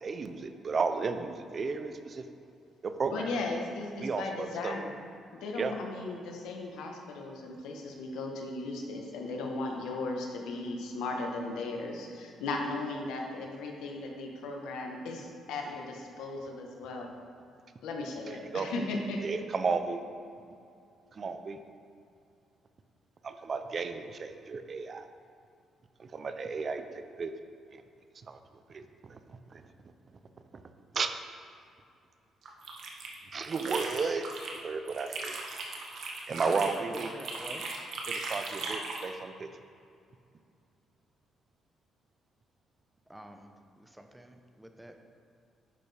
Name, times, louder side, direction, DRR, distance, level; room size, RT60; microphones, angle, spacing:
voice 1, 0.0-2.2 2.8-3.3 4.0-4.8 5.6-5.7 18.2-18.7 19.2-20.0 21.1-21.6 23.2-25.1 26.0-27.3 27.7-27.8 28.3-28.4 28.7-29.7 30.5-30.6 30.9-31.2 33.3-34.3 34.5-35.4 36.3-37.1 38.1-39.5, right 4 dB, 45° right, 8 dB, 0.6 m, -33 dB
voice 2, 3.1-4.9 5.3-17.1 17.8-19.2, left 2 dB, 90° left, 1 dB, 1.1 m, -36 dB
sound 1, 32.4-34.6 34.9-39.1, right 3 dB, 70° right, 1.2 m, -38 dB
voice 3, 37.1-37.6 43.1-43.5 43.8-45.0, right 1 dB, 5° right, 5 dB, 0.7 m, -46 dB
10.5 x 6.8 x 3.4 m, 2.5 s
cardioid pair, 90°, 0 cm